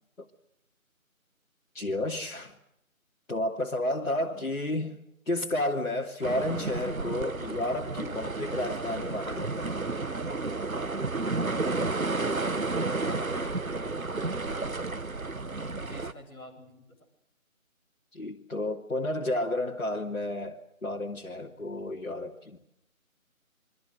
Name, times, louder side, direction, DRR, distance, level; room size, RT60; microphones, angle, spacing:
voice 1, 1.7-2.5 3.3-4.9 5.3-9.8 18.1-22.6, left 1 dB, 65° left, -2 dB, 2.9 m, -31 dB
voice 2, 4.0-4.4 13.0-13.6 15.6-17.0, equal, 10° left, -7 dB, 4.2 m, -47 dB
sound 1, 6.2-16.1, right 3 dB, 70° right, 1.8 m, -32 dB
29.0 x 24.0 x 6.7 m, 0.78 s
figure-of-eight pair, 165°, 42 cm